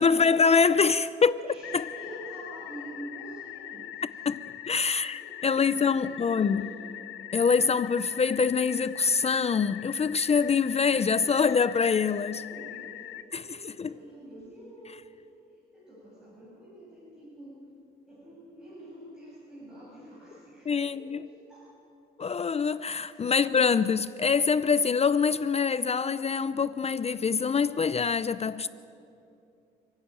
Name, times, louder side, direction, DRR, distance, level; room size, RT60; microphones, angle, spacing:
voice 1, 0.0-1.5 1.7-1.9 4.3-6.6 7.3-12.4 13.3-13.9 20.7-21.2 22.2-28.7, left 5 dB, 30° left, 0.5 m, -25 dB
voice 2, 1.5-4.2 5.2-5.5 5.7-6.7 12.2-13.0 13.3-15.1 15.7-17.6 18.1-21.2 21.5-21.7 23.0-23.2, right 1 dB, 5° right, 7.4 m, -46 dB
sound 1, 1.6-13.2, left 13 dB, 90° left, 1.0 m, -42 dB
30.0 x 11.5 x 9.0 m
cardioid pair, 90°, 20 cm